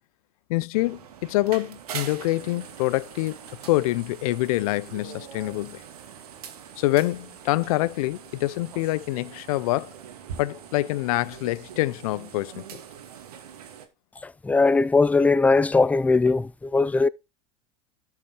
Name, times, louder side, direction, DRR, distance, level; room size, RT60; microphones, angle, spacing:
voice 1, 0.5-3.4 3.7-5.8 6.8-9.9 10.4-12.7, left 18 dB, 70° left, 0.7 m, -26 dB
sound 1, 0.7-13.9, right 8 dB, 80° right, 2.1 m, -42 dB
voice 2, 14.2-17.1, left 3 dB, 5° left, 0.4 m, -20 dB
12.0 x 5.9 x 4.5 m
hypercardioid pair, 100°, 19 cm